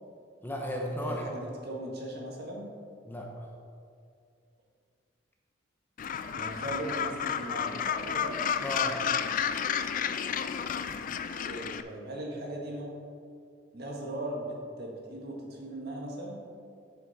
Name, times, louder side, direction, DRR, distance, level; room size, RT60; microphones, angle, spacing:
voice 1, 0.4-1.2 3.0-3.5 8.6-9.0, left 1 dB, 10° left, -1 dB, 0.8 m, -34 dB
voice 2, 1.0-2.7 6.3-8.4 11.4-12.9 13.7-16.4, right 1 dB, 55° right, -1 dB, 1.6 m, -38 dB
Gull seagull, 6.0-11.8, left 7 dB, 45° left, 0.3 m, -31 dB
7.6 x 7.6 x 4.1 m, 2.3 s
head